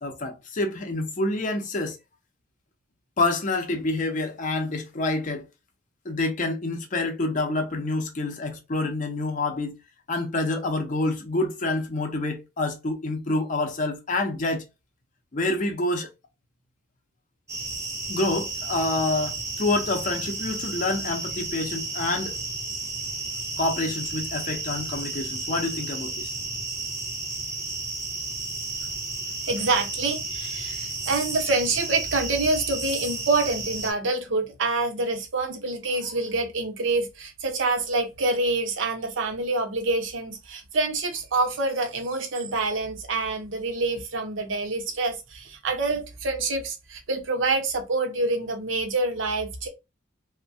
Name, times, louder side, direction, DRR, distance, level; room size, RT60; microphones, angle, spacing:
voice 1, 0.0-2.0 3.2-5.4 6.1-9.7 10.1-14.6 15.3-16.1 18.1-22.3 23.6-26.3, left 2 dB, 40° left, 0.5 m, -27 dB
sound 1, 17.5-33.9, right 3 dB, 15° right, 0.5 m, -32 dB
voice 2, 29.4-49.7, right 3 dB, 70° right, 0.7 m, -26 dB
3.1 x 2.1 x 2.6 m
head